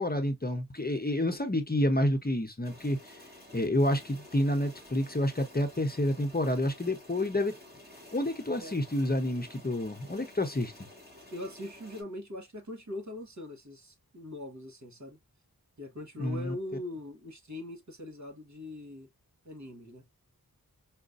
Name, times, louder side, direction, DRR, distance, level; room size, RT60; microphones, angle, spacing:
voice 1, 0.0-3.2 3.5-7.6 8.1-10.7 16.2-16.5, left 1 dB, 25° left, 0.8 m, -29 dB
sound 1, 2.6-12.0, left 1 dB, 25° right, 1.8 m, -52 dB
voice 2, 11.3-15.2 15.8-19.1 19.4-20.1, left 1 dB, 50° right, 1.4 m, -41 dB
5.1 x 2.2 x 2.5 m
wide cardioid pair, 70°, 36 cm